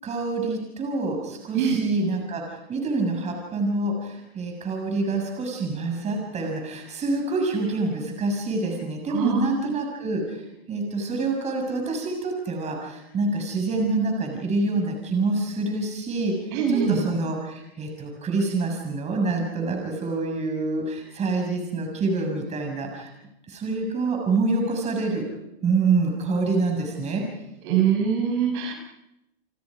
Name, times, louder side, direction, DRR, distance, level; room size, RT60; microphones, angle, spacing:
voice 1, 0.0-2.4 2.7-10.4 10.7-16.3 16.7-23.1 23.5-25.2 25.6-27.2, right 3 dB, 20° right, 2 dB, 6.7 m, -26 dB
voice 2, 9.1-9.5 16.5-17.0 27.6-28.7, right 7 dB, 50° right, 3 dB, 6.5 m, -23 dB
30.0 x 24.5 x 5.1 m, 0.85 s
hypercardioid pair, 130°, 32 cm